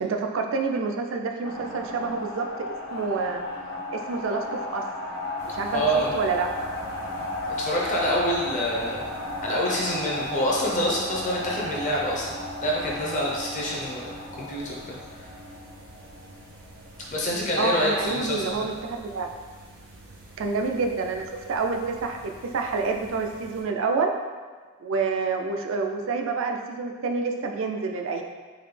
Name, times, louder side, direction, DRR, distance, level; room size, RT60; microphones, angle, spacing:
voice 1, 0.0-3.5 3.9-4.8 5.4-5.8 6.1-6.5 17.6-19.3 20.4-24.1 24.8-28.2, right 4 dB, 60° right, 3 dB, 0.4 m, -28 dB
sound 1, 1.4-17.2, left 1 dB, 75° left, 0.8 m, -35 dB
sound 2, 5.4-23.6, right 2 dB, 90° right, 0.8 m, -47 dB
voice 2, 5.7-6.1 7.6-9.1 9.4-12.3 12.6-15.3 17.1-18.7, equal, 35° left, -3 dB, 0.6 m, -27 dB
3.9 x 2.7 x 3.2 m, 1.5 s
head